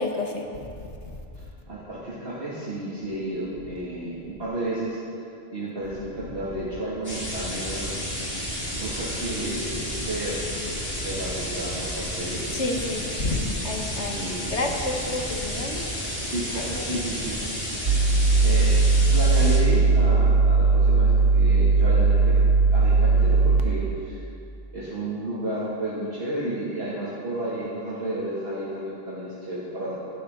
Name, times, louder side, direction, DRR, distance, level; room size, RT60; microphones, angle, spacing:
voice 1, 0.0-1.5 10.9-11.0 12.5-16.8 18.0-18.2, left 2 dB, 75° left, 1 dB, 2.0 m, -31 dB
voice 2, 1.7-5.0 5.5-7.9 8.7-10.5 10.8-12.4 14.1-14.6 16.2-17.4 18.0-18.7 19.1-22.4 22.7-24.2 24.7-30.0, right 1 dB, 60° right, -10 dB, 2.9 m, -32 dB
sound 1, 7.0-19.6, equal, 60° left, 4.3 m, -31 dB
sound 2, 17.9-23.6, right 4 dB, 85° right, 1.1 m, -18 dB
24.5 x 12.0 x 4.0 m, 2.6 s
omnidirectional pair, 1.2 m